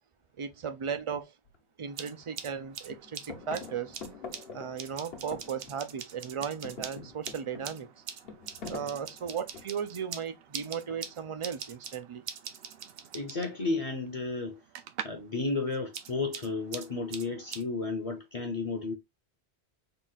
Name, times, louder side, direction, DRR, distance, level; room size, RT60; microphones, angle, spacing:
voice 1, 0.4-1.3 1.8-4.0 4.5-7.9 8.7-12.2, right 7 dB, 50° right, 0.4 m, -36 dB
sound 1, 1.5-1.6 2.0-2.6 2.9-6.0 6.3-9.9 10.9-11.4, left 4 dB, 65° left, 1.2 m, -46 dB
sound 2, 1.9-15.3 15.6-17.6, right 8 dB, 70° right, 0.8 m, -44 dB
voice 2, 13.1-14.6 15.0-18.9, left 3 dB, 35° left, 0.8 m, -33 dB
3.9 x 2.4 x 3.9 m
omnidirectional pair, 1.1 m